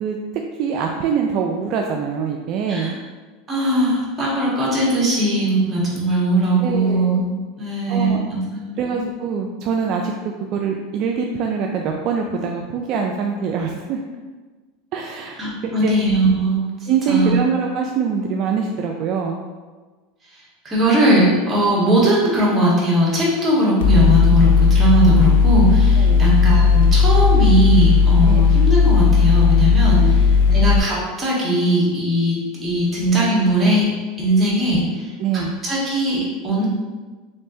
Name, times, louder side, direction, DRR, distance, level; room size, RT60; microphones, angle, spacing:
voice 1, 0.0-2.9 6.6-7.2 7.9-8.2 8.8-10.1 10.5-14.0 14.9-15.4 15.6-15.9 16.9-19.4 26.0-26.3 28.2-28.5 29.9-30.6 35.2-35.5, right 6 dB, 50° right, 2 dB, 0.3 m, -24 dB
voice 2, 3.5-7.3 7.6-8.8 15.4-16.7 17.1-17.4 20.6-33.9 34.2-36.7, right 1 dB, 20° right, -5 dB, 1.3 m, -19 dB
Mechanical fan, 23.8-30.8, left 5 dB, 80° left, 0.3 m, -14 dB
3.4 x 3.3 x 2.7 m, 1.3 s
supercardioid pair, 110°, 0 cm